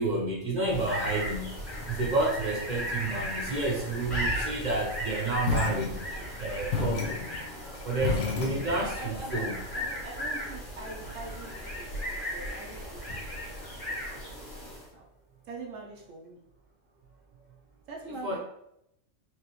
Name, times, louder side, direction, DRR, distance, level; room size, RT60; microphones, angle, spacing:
voice 1, 0.0-6.0 6.4-7.2 7.8-9.6 18.2-18.4, right 2 dB, 45° right, -1 dB, 0.7 m, -30 dB
sound 1, 0.6-14.9, equal, 40° left, 1.6 m, -36 dB
sound 2, 5.4-6.3 6.7-9.1, left 4 dB, 85° left, 1.2 m, -31 dB
voice 2, 5.6-7.3 8.6-14.5 14.9-15.1 15.4-16.5 17.9-18.4, right 3 dB, 80° right, -1 dB, 1.1 m, -45 dB
4.7 x 2.9 x 3.0 m, 0.76 s
omnidirectional pair, 1.3 m